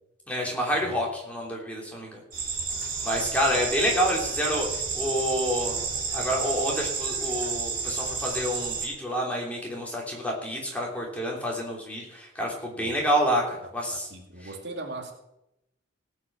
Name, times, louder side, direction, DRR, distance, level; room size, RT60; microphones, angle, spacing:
voice 1, 0.3-2.2 3.0-4.7 4.9-13.4 13.7-14.1, equal, 5° left, -2 dB, 3.3 m, -28 dB
sound 1, 2.3-8.9, right 5 dB, 50° right, 3.7 m, -31 dB
voice 2, 13.9-15.1, right 2 dB, 65° right, 2 dB, 2.4 m, -39 dB
17.5 x 6.2 x 7.2 m, 0.86 s
head